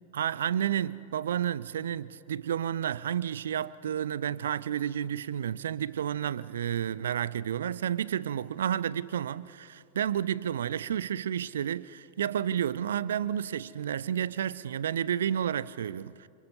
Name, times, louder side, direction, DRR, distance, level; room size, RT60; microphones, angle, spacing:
voice 1, 0.1-16.3, right 9 dB, 65° right, 0.5 m, -31 dB
27.5 x 26.5 x 5.6 m
figure-of-eight pair, 90°, 0 cm